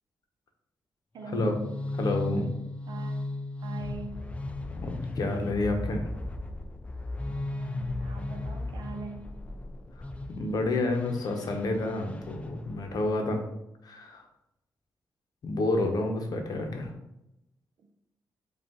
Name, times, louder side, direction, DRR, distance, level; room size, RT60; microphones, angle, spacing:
voice 1, 1.1-1.8 2.9-3.2 3.6-4.4 7.2-9.3 17.8-17.9, right 3 dB, 70° right, 4 dB, 0.7 m, -42 dB
sound 1, 1.3-13.1, left 2 dB, 15° left, 0.3 m, -36 dB
voice 2, 2.0-2.5 4.8-6.1 10.0-13.4 13.8-14.2 15.4-16.9, left 2 dB, 55° left, 3 dB, 0.8 m, -29 dB
5.1 x 2.4 x 3.7 m, 0.87 s
wide cardioid pair, 135°, 8 cm